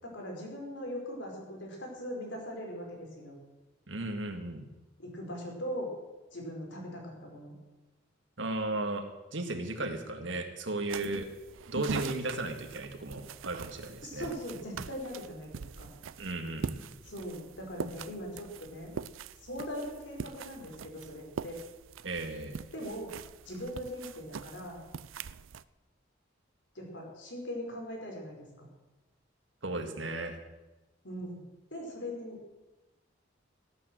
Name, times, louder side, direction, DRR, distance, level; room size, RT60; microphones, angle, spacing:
voice 1, 0.0-3.4 5.0-5.9 6.3-7.5 14.0-15.9 17.1-18.9 19.4-21.6 22.7-23.1 23.4-24.8 26.7-28.7 31.0-32.5, equal, 65° left, 0 dB, 4.9 m, -40 dB
voice 2, 3.9-4.7 8.4-11.3 11.7-14.3 16.2-16.8 22.0-22.6 29.6-30.4, right 2 dB, 65° right, 5 dB, 2.0 m, -35 dB
sound 1, 10.9-25.6, right 6 dB, 85° right, 0.5 m, -43 dB
17.5 x 9.1 x 7.8 m, 1.1 s
head